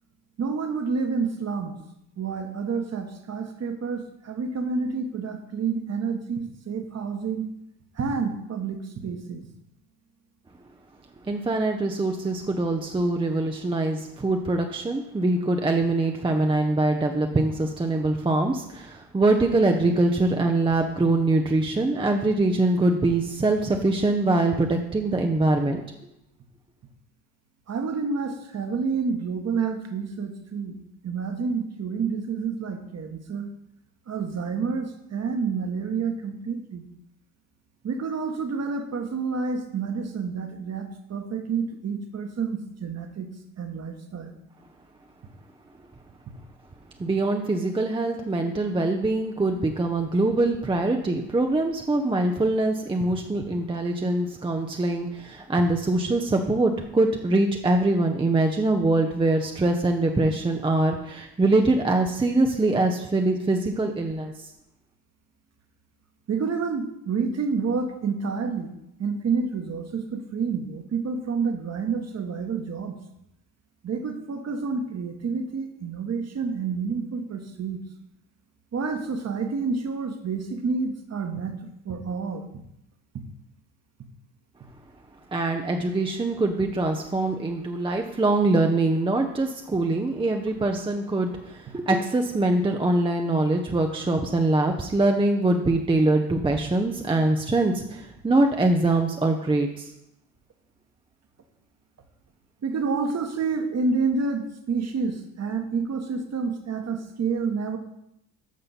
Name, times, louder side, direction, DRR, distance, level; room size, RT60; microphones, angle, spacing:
voice 1, 0.4-1.8 2.2-7.5 7.9-9.5 27.7-33.5 34.1-36.8 37.8-43.3 43.6-44.3 66.3-68.7 69.0-73.0 73.8-77.8 78.7-82.5 102.6-107.8, right 5 dB, 30° right, 6 dB, 1.4 m, -29 dB
voice 2, 11.2-25.8 47.0-64.5 85.3-99.9, right 2 dB, 10° right, 3 dB, 0.8 m, -23 dB
11.5 x 6.6 x 4.1 m, 0.83 s
figure-of-eight pair, 60°, 48 cm